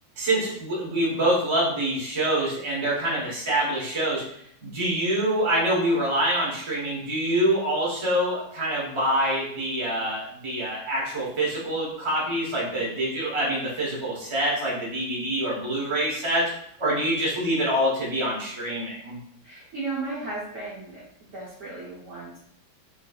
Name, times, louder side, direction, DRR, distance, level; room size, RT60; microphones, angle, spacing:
voice 1, 0.2-4.2 4.6-16.5 16.8-19.2, right 1 dB, 40° right, -5 dB, 0.4 m, -25 dB
voice 2, 19.4-21.0 21.3-22.4, right 3 dB, 65° right, -7 dB, 0.8 m, -35 dB
3.3 x 2.9 x 2.2 m, 0.71 s
omnidirectional pair, 2.1 m